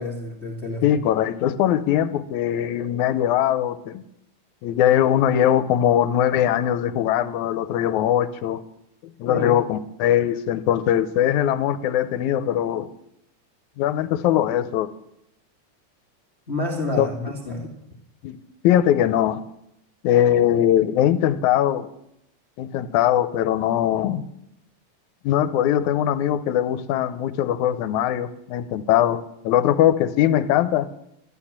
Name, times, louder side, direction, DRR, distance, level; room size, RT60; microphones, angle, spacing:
voice 1, 0.0-1.0 9.3-9.5 16.5-17.7, left 2 dB, 25° left, -1 dB, 2.2 m, -29 dB
voice 2, 0.8-4.0 4.6-8.6 9.0-12.9 13.8-14.9 17.0-17.1 18.2-18.4 18.6-19.4 20.0-21.9 22.6-24.2 25.2-30.9, left 11 dB, 80° left, 13 dB, 2.1 m, -21 dB
13.0 x 12.0 x 7.3 m, 0.81 s
omnidirectional pair, 3.4 m